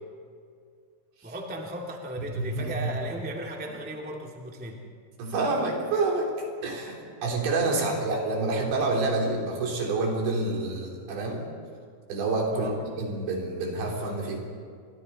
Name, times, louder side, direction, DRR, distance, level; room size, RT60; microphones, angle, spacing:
voice 1, 1.2-4.8 7.7-8.1 12.5-12.8, right 1 dB, 5° right, 0 dB, 0.6 m, -36 dB
voice 2, 2.4-2.9 5.2-6.3 6.6-11.4 12.1-12.7 13.0-14.4, right 3 dB, 80° right, -1 dB, 5.6 m, -28 dB
30.0 x 24.0 x 4.2 m, 2.2 s
omnidirectional pair, 5.0 m